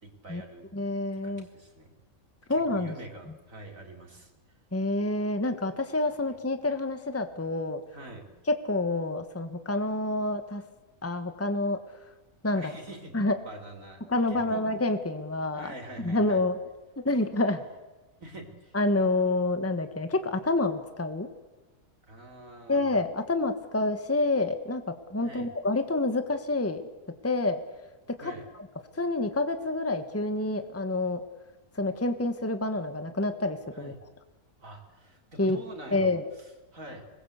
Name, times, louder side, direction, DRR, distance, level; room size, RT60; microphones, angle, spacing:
voice 1, 0.0-0.7 1.1-1.9 2.5-4.6 7.9-8.3 12.5-14.7 15.5-16.4 17.1-17.2 18.2-18.8 22.1-22.9 25.2-25.5 28.2-28.5 33.7-34.0 34.6-36.1 36.4-37.0, right 1 dB, 65° right, 2 dB, 4.7 m, -45 dB
voice 2, 0.7-1.5 2.5-2.9 4.7-7.8 8.5-10.6 11.0-11.8 12.4-12.7 13.1-13.3 14.1-15.7 16.0-16.6 17.0-17.6 18.7-21.3 22.7-26.8 27.2-27.6 28.1-28.3 28.9-31.2 31.7-33.9 35.4-35.6 35.9-36.2, left 2 dB, 10° left, 8 dB, 1.5 m, -28 dB
26.5 x 20.5 x 8.3 m, 1.2 s
omnidirectional pair, 1.5 m